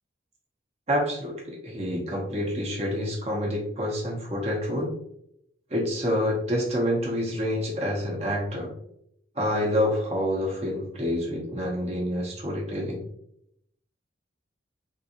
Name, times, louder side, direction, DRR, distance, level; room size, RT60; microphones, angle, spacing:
voice 1, 0.9-4.9 5.7-8.7 9.3-13.0, equal, 35° right, -3 dB, 0.7 m, -27 dB
3.6 x 2.5 x 2.8 m, 0.75 s
head